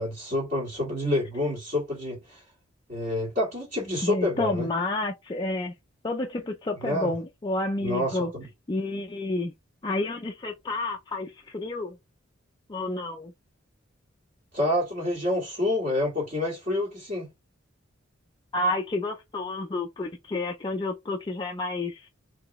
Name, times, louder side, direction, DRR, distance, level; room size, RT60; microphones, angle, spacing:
voice 1, 0.0-2.4 2.9-4.7 6.8-7.1 7.8-8.5 14.5-17.3, left 1 dB, 45° right, 1.7 m, -28 dB
voice 2, 4.0-5.7 6.0-8.3 8.7-9.5 9.8-12.0 12.7-13.3 18.5-22.1, left 2 dB, 25° left, 0.4 m, -30 dB
3.9 x 3.1 x 3.0 m
head